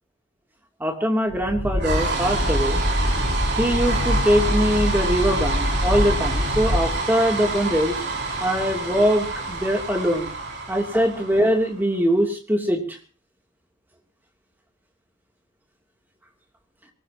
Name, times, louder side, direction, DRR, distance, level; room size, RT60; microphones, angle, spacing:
voice 1, 0.8-2.9 3.6-8.0 8.4-10.3 10.7-13.0, equal, 10° right, 2 dB, 2.8 m, -22 dB
sound 1, 1.3-11.8, right 1 dB, 50° right, 4.7 m, -25 dB
23.0 x 19.0 x 2.9 m, 0.37 s
head